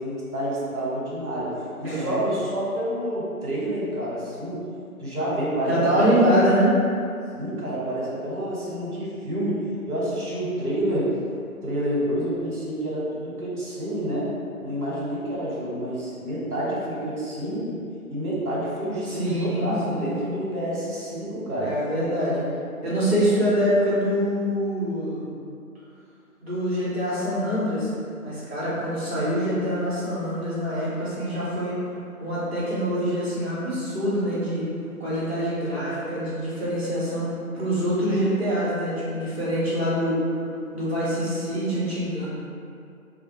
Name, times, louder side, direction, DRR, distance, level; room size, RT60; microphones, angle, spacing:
voice 1, 0.0-4.7 5.0-6.2 7.3-11.1 11.6-14.3 14.6-17.8 18.1-21.7, right 1 dB, 70° right, -6 dB, 1.1 m, -28 dB
voice 2, 1.8-2.2 5.7-6.8 19.1-20.1 21.6-22.4 22.8-25.3 26.4-27.9 28.2-31.8 32.2-34.6 35.0-40.2 40.7-42.3, equal, 45° right, -10 dB, 0.9 m, -25 dB
2.4 x 2.2 x 2.9 m, 2.5 s
figure-of-eight pair, 165°, 44 cm